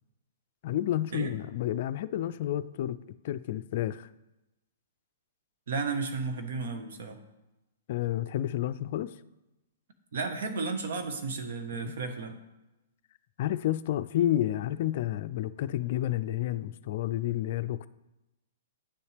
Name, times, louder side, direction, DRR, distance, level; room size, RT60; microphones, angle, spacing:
voice 1, 0.6-3.0 3.2-4.1 7.9-9.1 11.7-11.9 13.4-17.9, left 13 dB, 55° left, 13 dB, 0.4 m, -30 dB
voice 2, 5.7-7.2 10.1-12.3, right 4 dB, 70° right, 6 dB, 1.2 m, -33 dB
9.4 x 7.0 x 3.4 m, 0.97 s
hypercardioid pair, 135°, 0 cm